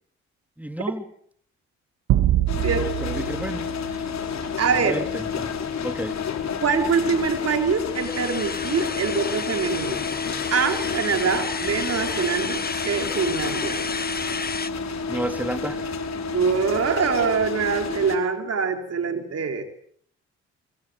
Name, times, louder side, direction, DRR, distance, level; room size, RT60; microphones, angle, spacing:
voice 1, 0.6-1.0 2.6-3.6 3.9-4.0 4.7-5.5 5.8-6.2 15.1-15.9, right 1 dB, 5° right, 3.4 m, -31 dB
sound 1, 2.1-4.7, right 13 dB, 75° right, 2.1 m, -25 dB
sound 2, 2.5-18.2, left 5 dB, 60° left, 4.3 m, -30 dB
voice 2, 4.6-5.0 6.6-10.0 10.5-13.9 16.3-19.6, right 5 dB, 50° right, 4.2 m, -24 dB
sound 3, 7.9-14.7, left 4 dB, 30° left, 1.8 m, -32 dB
25.0 x 23.5 x 7.9 m
supercardioid pair, 55°, 31 cm